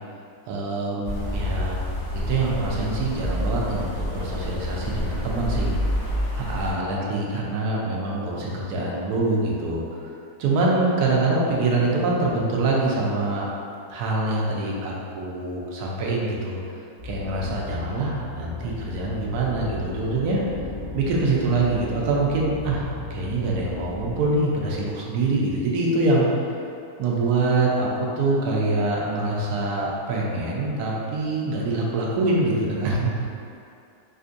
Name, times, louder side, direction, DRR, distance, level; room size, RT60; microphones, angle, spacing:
voice 1, 0.5-1.8 2.3-5.7 6.4-10.0 10.4-13.5 13.9-16.6 17.0-20.4 20.9-26.3 27.0-33.2, right 2 dB, 80° right, -3 dB, 1.1 m, -24 dB
sound 1, 1.0-6.7, left 1 dB, 55° left, 1.1 m, -28 dB
sound 2, 17.0-24.3, left 3 dB, 40° right, 1.3 m, -35 dB
4.4 x 2.6 x 2.5 m, 2.5 s
omnidirectional pair, 1.7 m